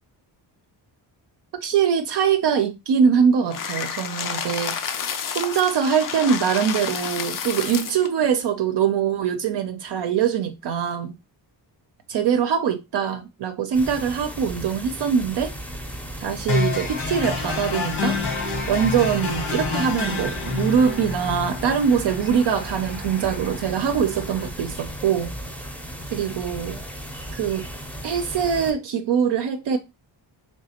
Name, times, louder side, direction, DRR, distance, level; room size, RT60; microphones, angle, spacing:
voice 1, 1.6-4.8 5.3-11.1 12.1-15.5 16.2-18.2 18.7-25.3 26.1-26.8 27.3-27.7 28.0-29.8, right 7 dB, 65° right, 0.6 m, -23 dB
sound 1, 3.5-8.1, left 7 dB, 45° left, 0.5 m, -30 dB
sound 2, 13.7-28.7, right 1 dB, 5° left, 0.6 m, -35 dB
sound 3, 16.5-24.5, left 4 dB, 85° left, 1.5 m, -29 dB
3.3 x 3.2 x 2.8 m
cardioid pair, 95°, 45 cm